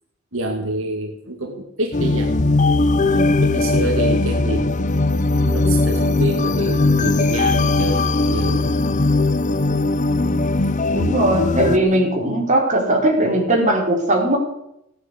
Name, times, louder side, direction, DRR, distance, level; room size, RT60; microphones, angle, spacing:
voice 1, 0.3-2.5 3.4-4.7 5.3-8.8 11.7-12.1, right 1 dB, 70° right, 2 dB, 2.2 m, -28 dB
sound 1, 1.9-11.8, left 2 dB, 35° left, 0.8 m, -19 dB
voice 2, 3.0-3.4 5.3-5.8 10.1-10.4 10.9-14.4, right 1 dB, 35° right, 0 dB, 4.8 m, -20 dB
17.5 x 9.5 x 8.6 m, 0.80 s
head